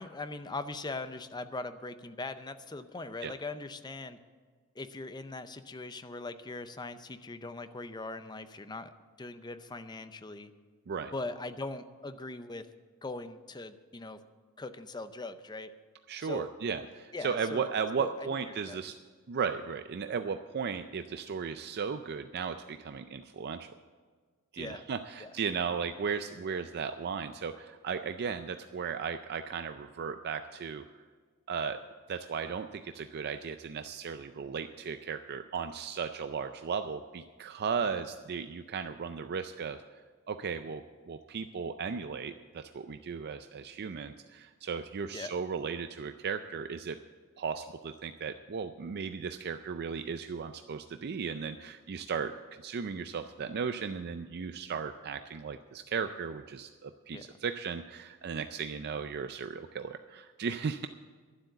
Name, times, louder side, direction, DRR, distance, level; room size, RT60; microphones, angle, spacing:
voice 1, 0.0-4.2 4.8-8.9 9.2-10.5 11.1-12.7 13.0-14.2 14.6-15.7 16.2-16.5 17.1-17.7 18.0-18.1 18.5-18.8 24.6-24.8 25.2-25.3 37.9-38.1 45.1-45.3 57.1-57.3, left 2 dB, 20° left, 11 dB, 0.6 m, -40 dB
voice 2, 16.1-18.9 19.3-23.7 24.5-30.8 31.5-31.8 32.1-39.8 40.3-47.0 47.4-52.3 52.6-60.9, right 6 dB, 45° right, 9 dB, 0.4 m, -36 dB
12.0 x 7.7 x 8.0 m, 1.5 s
head